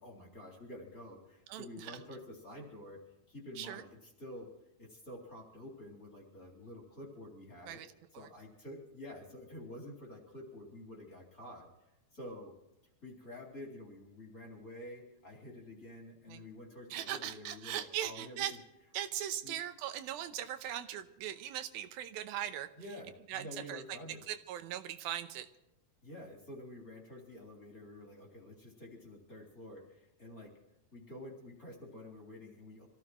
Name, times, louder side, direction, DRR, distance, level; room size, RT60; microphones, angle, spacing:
voice 1, 0.0-3.0 3.3-4.5 4.8-7.8 8.1-11.7 12.1-12.5 13.0-18.4 19.4-19.6 22.8-24.2 26.0-30.5 30.9-32.9, left 1 dB, 25° left, 0 dB, 3.6 m, -49 dB
voice 2, 1.5-1.9 3.6-3.8 7.7-7.9 8.1-8.3 16.3-16.4 16.9-18.6 18.9-22.7 23.3-23.8 24.3-25.5, right 11 dB, 85° right, 9 dB, 2.7 m, -39 dB
25.5 x 16.0 x 3.1 m, 0.92 s
omnidirectional pair, 4.2 m